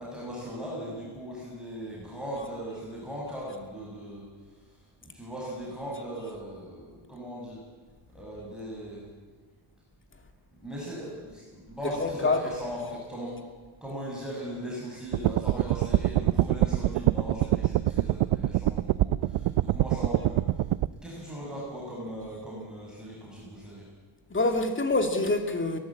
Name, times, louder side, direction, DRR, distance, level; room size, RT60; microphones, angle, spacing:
voice 1, 0.0-4.2 5.1-7.6 8.1-9.0 10.6-13.3 13.8-20.4 21.0-23.8, equal, ahead, 6.5 m, -38 dB
voice 2, 11.8-12.6 24.3-25.8, left 2 dB, 25° left, 2.4 m, -26 dB
sound 1, 15.1-20.9, right 14 dB, 85° right, 0.7 m, -25 dB
23.0 x 18.0 x 8.5 m
wide cardioid pair, 155°, 49 cm